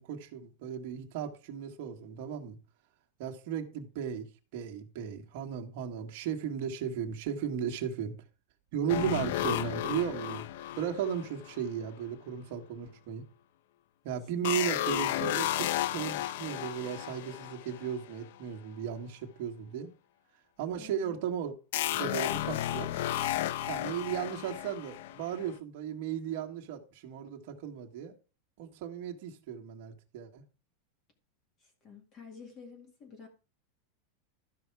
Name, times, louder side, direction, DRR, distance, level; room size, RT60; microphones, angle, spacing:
voice 1, 0.0-2.6 3.2-4.3 4.5-8.2 8.7-10.4 10.8-13.2 14.0-19.9 20.6-21.5 21.9-22.9 23.7-28.1 28.6-30.4, right 8 dB, 45° right, 1.8 m, -35 dB
sound 1, 8.9-11.8 14.4-18.0 21.7-25.5, left 13 dB, 55° left, 0.4 m, -33 dB
voice 2, 14.2-14.6 20.8-21.2 31.6-33.3, left 6 dB, 25° left, 2.0 m, -50 dB
13.0 x 5.8 x 4.7 m
supercardioid pair, 180°, 0 cm